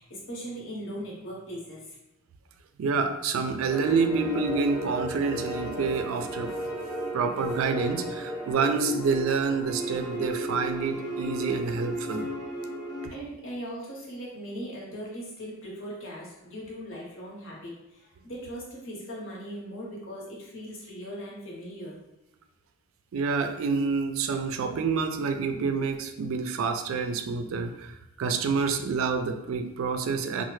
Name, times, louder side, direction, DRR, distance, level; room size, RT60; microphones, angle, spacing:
voice 1, 0.0-2.0 13.1-22.0, equal, 60° left, -3 dB, 0.9 m, -39 dB
voice 2, 2.8-6.5 7.1-12.3 23.1-30.4, right 4 dB, 60° right, 7 dB, 0.3 m, -28 dB
sound 1, 3.7-13.1, right 1 dB, 20° left, 0.5 m, -34 dB
3.1 x 2.0 x 3.1 m, 0.90 s
head